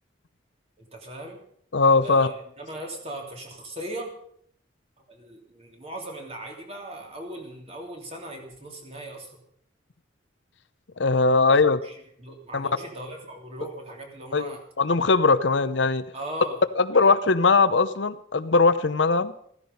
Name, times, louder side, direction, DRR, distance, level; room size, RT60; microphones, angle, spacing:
voice 1, 0.9-1.4 2.0-4.1 5.1-9.4 11.5-14.6 16.1-16.6 16.9-17.1, right 1 dB, 30° right, 1 dB, 3.2 m, -39 dB
voice 2, 1.7-2.3 11.0-11.8 12.5-12.7 14.3-16.0 16.8-19.3, left 4 dB, 70° left, 12 dB, 0.7 m, -20 dB
14.5 x 14.5 x 5.4 m, 0.65 s
head